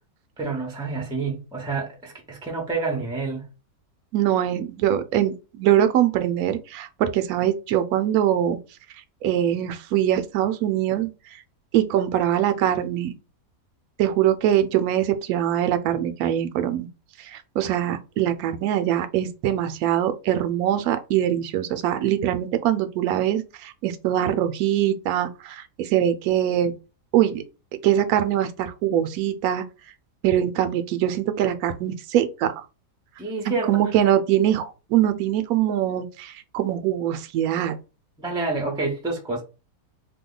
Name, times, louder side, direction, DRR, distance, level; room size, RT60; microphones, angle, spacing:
voice 1, 0.4-3.5 33.2-33.8 38.2-39.4, right 3 dB, 5° right, 0.3 m, -28 dB
voice 2, 4.1-8.6 9.2-11.1 11.7-13.1 14.0-16.9 17.2-26.7 27.1-27.4 27.8-29.6 30.2-32.5 33.5-37.8, right 11 dB, 70° right, 1.0 m, -23 dB
2.8 x 2.2 x 3.7 m
omnidirectional pair, 1.7 m